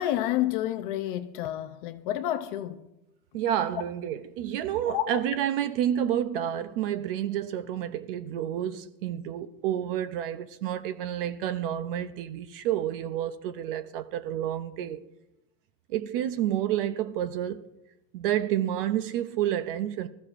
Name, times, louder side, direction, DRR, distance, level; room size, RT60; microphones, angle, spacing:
voice 1, 0.0-2.9 4.9-5.2, left 13 dB, 35° left, 0.4 m, -29 dB
voice 2, 3.3-15.0 15.9-17.6 18.1-20.1, right 11 dB, 40° right, 0.4 m, -29 dB
24.5 x 14.5 x 2.5 m
supercardioid pair, 175°, 47 cm